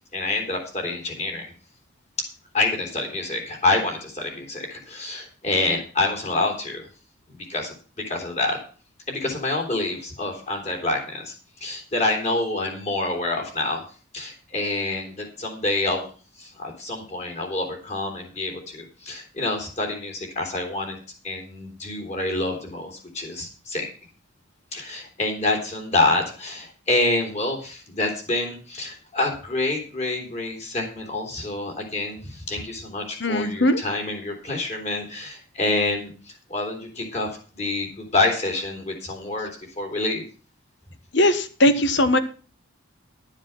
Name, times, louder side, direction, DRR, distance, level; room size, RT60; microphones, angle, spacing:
voice 1, 0.1-1.4 2.2-2.3 2.5-6.8 7.3-7.7 8.1-8.6 9.1-11.3 11.6-13.8 14.1-16.1 16.4-21.0 21.2-23.9 24.7-37.3 37.5-39.5 39.8-40.2, left 2 dB, 35° left, 2 dB, 3.2 m, -27 dB
voice 2, 33.2-33.8 41.1-42.2, left 1 dB, 55° left, 11 dB, 1.1 m, -19 dB
12.0 x 7.4 x 6.0 m, 0.38 s
head